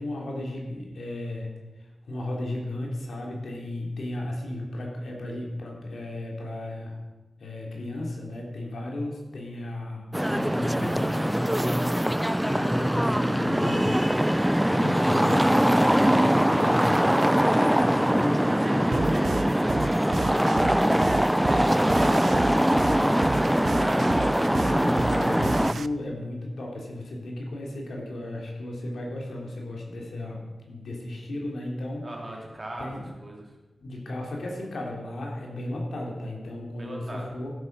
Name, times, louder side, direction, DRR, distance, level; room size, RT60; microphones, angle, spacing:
voice 1, 0.0-1.5 1.8-7.0 7.4-14.0 14.5-17.1 17.4-19.0 24.6-32.0 32.8-33.1 33.8-37.5, left 1 dB, 90° left, -1 dB, 3.2 m, -34 dB
sound 1, 10.1-25.7, equal, 5° right, 0.3 m, -22 dB
voice 2, 13.9-14.3 18.5-21.2 21.4-24.3 32.0-32.9 33.2-33.6 36.8-37.3, right 1 dB, 30° right, -1 dB, 3.1 m, -38 dB
sound 2, 18.9-25.9, right 5 dB, 75° right, 0.4 m, -34 dB
14.0 x 8.7 x 6.1 m, 1.2 s
wide cardioid pair, 130°, 0 cm